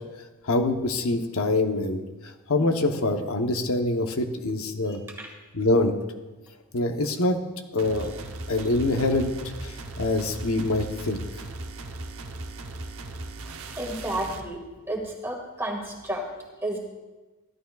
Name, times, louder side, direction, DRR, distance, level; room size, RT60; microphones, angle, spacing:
voice 1, 0.5-2.0 2.5-5.0 5.5-5.9 6.7-7.4 7.7-8.1 8.5-9.3 9.6-11.2, left 2 dB, 80° left, 5 dB, 0.9 m, -25 dB
voice 2, 4.9-5.3 13.8-14.6 14.9-16.2 16.6-16.8, right 1 dB, 10° right, 0 dB, 1.8 m, -31 dB
sound 1, 7.8-14.5, right 2 dB, 85° right, 0.8 m, -38 dB
16.0 x 11.5 x 2.3 m, 1.2 s
head